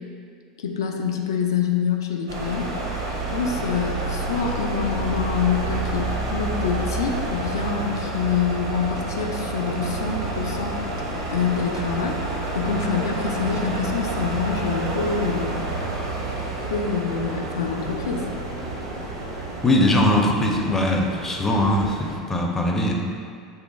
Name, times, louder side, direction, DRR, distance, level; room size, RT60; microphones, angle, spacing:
voice 1, 0.6-2.7 3.3-10.7 11.3-12.2 12.5-15.6 16.7-18.3, left 6 dB, 70° left, 2 dB, 0.4 m, -26 dB
sound 1, 2.3-22.2, right 2 dB, 70° right, 0.6 m, -29 dB
voice 2, 19.6-22.9, left 1 dB, 15° left, 0 dB, 0.5 m, -21 dB
6.4 x 2.3 x 2.2 m, 2.3 s
figure-of-eight pair, 75°, 2 cm